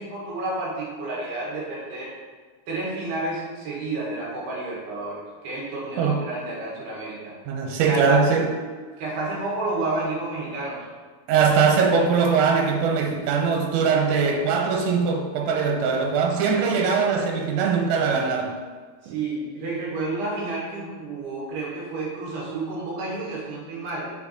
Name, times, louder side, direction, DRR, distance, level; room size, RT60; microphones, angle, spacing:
voice 1, 0.0-2.2 2.7-7.3 7.8-8.3 9.0-10.9 19.0-24.1, right 2 dB, 65° right, -5 dB, 3.0 m, -30 dB
voice 2, 7.5-8.5 11.3-18.6 19.1-19.2, right 5 dB, 85° right, 2 dB, 3.3 m, -21 dB
7.1 x 4.6 x 4.2 m, 1.5 s
omnidirectional pair, 5.9 m